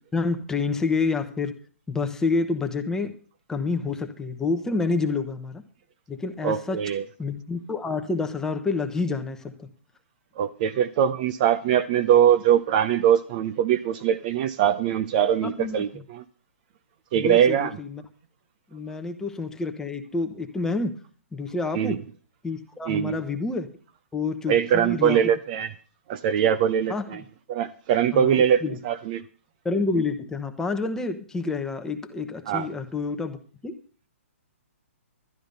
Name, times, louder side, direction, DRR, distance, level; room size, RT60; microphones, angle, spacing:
voice 1, 0.1-1.5 1.9-3.1 3.5-5.6 6.1-6.8 7.2-9.7 15.4-16.0 17.1-18.0 18.7-20.9 21.3-22.0 22.4-23.7 24.1-25.3 26.9-27.0 28.1-28.8 29.6-33.4 33.6-33.7, left 3 dB, 5° left, 1.0 m, -28 dB
voice 2, 6.4-7.0 10.4-16.2 17.1-17.7 21.7-22.0 22.9-23.2 24.5-25.7 26.1-27.2 27.5-29.2 32.5-32.7, right 9 dB, 35° right, 0.6 m, -22 dB
12.5 x 10.0 x 5.3 m
hypercardioid pair, 145°, 8 cm